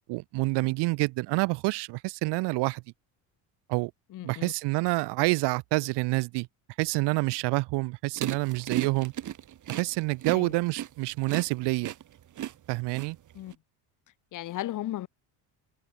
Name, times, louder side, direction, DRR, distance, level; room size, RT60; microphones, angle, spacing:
voice 1, 0.1-2.8 3.7-3.9 4.2-6.5 6.8-9.1 9.8-11.9 12.7-13.2, right 24 dB, 80° right, 1.5 m, -27 dB
voice 2, 4.1-4.5 10.3-10.5 13.3-13.5 14.3-15.1, left 14 dB, 50° left, 1.5 m, -35 dB
sound 1, 8.2-13.5, right 11 dB, 45° right, 6.2 m, -35 dB
cardioid pair, 145°, 41 cm